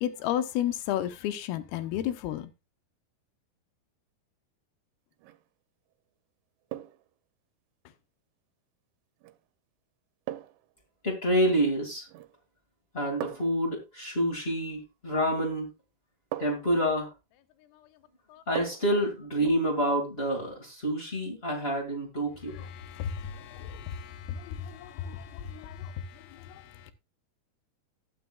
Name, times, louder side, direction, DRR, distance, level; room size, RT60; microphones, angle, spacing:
voice 1, 0.0-2.5 18.3-18.4 22.6-26.9, left 11 dB, 80° left, 2.6 m, -33 dB
sound 1, 5.1-5.5 6.7-7.1 9.2-9.4 10.3-10.7 12.1-12.5 13.2-13.6 15.3-15.4 16.3-16.8 18.6-19.0 19.4-19.5, right 14 dB, 85° right, 2.7 m, -40 dB
voice 2, 11.0-12.1 12.9-15.7 16.4-17.1 18.5-22.5, equal, 30° left, 1.2 m, -28 dB
18.5 x 6.2 x 2.3 m
omnidirectional pair, 4.6 m